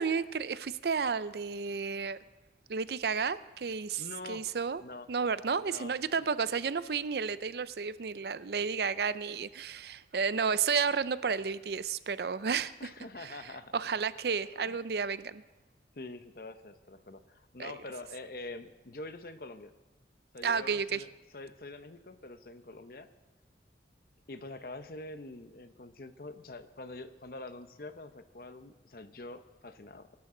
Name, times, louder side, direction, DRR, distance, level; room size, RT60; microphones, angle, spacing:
voice 1, 0.0-2.2 2.7-4.8 5.1-12.9 13.2-13.4 13.7-15.4 17.6-17.7 20.4-21.0, right 5 dB, 60° right, 15 dB, 0.5 m, -32 dB
voice 2, 4.0-4.4 4.8-5.1 5.6-5.9 12.8-13.8 14.5-14.8 15.9-19.7 20.3-23.1 24.3-30.2, left 2 dB, 55° left, 10 dB, 0.8 m, -45 dB
24.0 x 12.0 x 3.8 m, 1.1 s
head